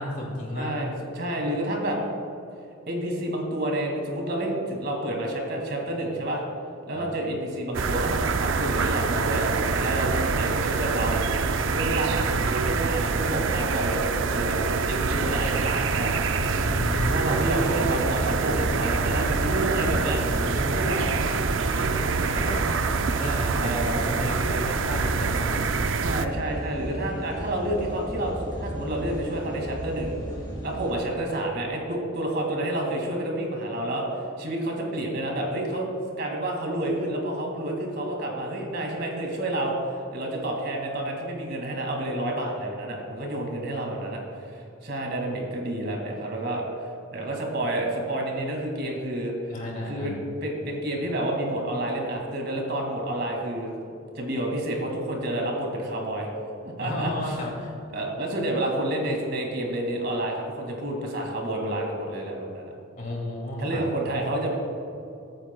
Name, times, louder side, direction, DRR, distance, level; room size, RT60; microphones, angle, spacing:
voice 1, 0.0-0.8 6.9-7.1 16.7-17.7 20.2-21.2 21.7-22.6 23.1-23.8 24.1-25.7 49.5-50.1 56.8-57.7 63.0-63.9, left 1 dB, 40° left, -2 dB, 2.5 m, -33 dB
voice 2, 0.5-2.0 2.9-6.4 6.9-11.2 11.7-16.1 17.0-20.2 20.7-21.0 22.2-22.5 23.6-24.0 26.0-30.2 30.6-34.1 34.4-39.7 40.1-49.3 49.9-53.7 54.1-56.3 56.6-57.1 57.9-62.7 63.6-64.5, right 1 dB, 50° right, 0 dB, 2.1 m, -29 dB
sound 1, 7.7-26.3, right 4 dB, 65° right, 0.5 m, -26 dB
sound 2, 16.3-31.0, equal, 20° left, 2.2 m, -35 dB
22.0 x 8.9 x 2.3 m, 2.8 s
head